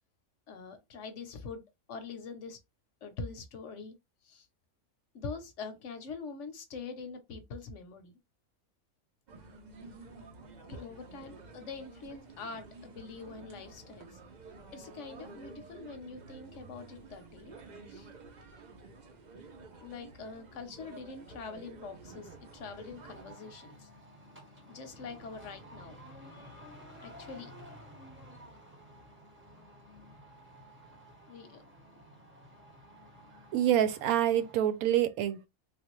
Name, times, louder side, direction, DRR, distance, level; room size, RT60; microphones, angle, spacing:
voice 1, 0.5-1.6 1.9-2.6 3.0-4.0 4.2-4.5 5.1-8.1 10.7-14.2 14.7-17.5 17.9-18.1 19.8-23.9 24.7-26.0 26.3-26.6 27.0-27.5 31.3-31.6, left 4 dB, 60° left, 0.9 m, -44 dB
sound 1, 9.3-23.2, right 3 dB, 60° right, 0.4 m, -51 dB
sound 2, 22.0-34.9, equal, 10° right, 0.8 m, -53 dB
voice 2, 33.5-35.5, right 11 dB, 80° right, 1.0 m, -27 dB
3.4 x 2.5 x 2.9 m
omnidirectional pair, 1.5 m